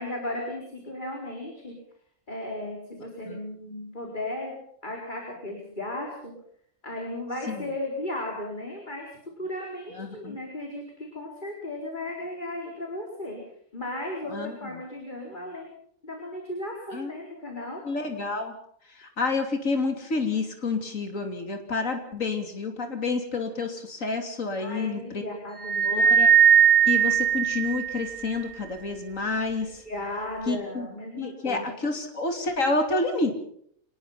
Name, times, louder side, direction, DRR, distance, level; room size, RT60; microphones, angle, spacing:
voice 1, 0.0-1.7 2.3-4.5 4.8-6.3 6.8-9.1 9.4-13.4 13.7-15.7 16.0-17.8 22.9-23.0 24.6-26.1 29.8-31.8, left 1 dB, 35° left, 0 dB, 4.7 m, -35 dB
voice 2, 10.0-10.4 14.3-14.6 16.9-17.1 17.8-18.5 19.0-25.2 25.8-26.3 26.9-29.8 30.5-30.9 31.2-33.4, left 3 dB, 70° left, 5 dB, 3.4 m, -29 dB
sound 1, 25.6-28.3, right 8 dB, ahead, 2.3 m, -19 dB
26.0 x 20.0 x 5.8 m, 0.66 s
omnidirectional pair, 1.4 m